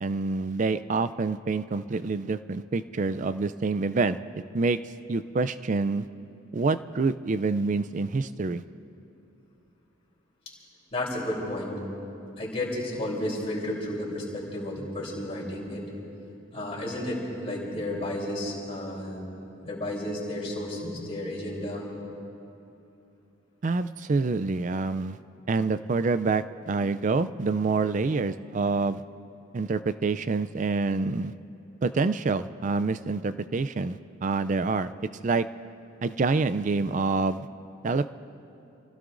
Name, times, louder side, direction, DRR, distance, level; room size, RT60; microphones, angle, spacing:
voice 1, 0.0-4.2 4.5-4.8 5.1-6.1 6.5-8.6 23.6-25.2 25.5-29.0 29.5-31.3 31.8-34.9 35.2-35.5 36.0-37.5 37.8-38.1, right 4 dB, 35° right, 13 dB, 0.4 m, -27 dB
voice 2, 10.9-11.8 12.4-15.8 16.5-19.2 19.6-21.9, left 1 dB, 30° left, -5 dB, 3.5 m, -32 dB
29.0 x 16.0 x 2.6 m, 2.8 s
head